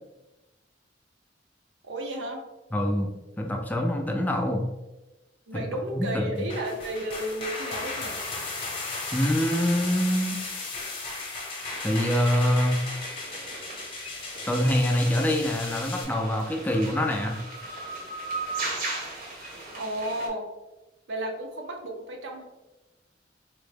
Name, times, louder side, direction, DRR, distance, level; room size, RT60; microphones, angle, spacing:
voice 1, 1.8-2.4 5.5-8.3 19.7-20.5 21.1-22.4, right 1 dB, 80° right, 2 dB, 0.6 m, -33 dB
voice 2, 2.7-4.7 5.5-6.3 9.1-10.4 11.8-12.8 14.5-17.4, equal, 10° left, 1 dB, 0.3 m, -25 dB
sound 1, 6.3-16.0, left 3 dB, 30° left, 0.8 m, -35 dB
sound 2, 11.6-20.3, right 2 dB, 50° right, 0.8 m, -38 dB
3.7 x 2.1 x 3.3 m, 1.1 s
head